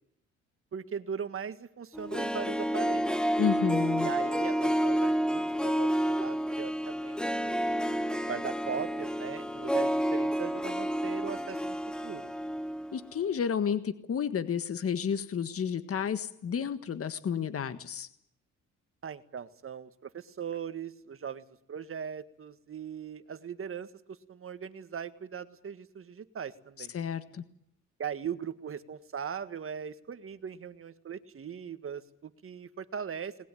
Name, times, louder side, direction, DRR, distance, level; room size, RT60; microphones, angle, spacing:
voice 1, 0.7-3.2 4.0-11.8 12.0-12.3 19.0-26.9 28.0-33.5, right 7 dB, 45° right, 11 dB, 1.8 m, -40 dB
Harp, 1.9-13.0 13.2-13.3, equal, 5° left, 1.3 m, -30 dB
voice 2, 3.4-4.1 12.9-18.1 26.8-27.4, left 7 dB, 50° left, 11 dB, 1.6 m, -31 dB
21.0 x 20.5 x 9.2 m, 0.74 s
cardioid pair, 90°, 30 cm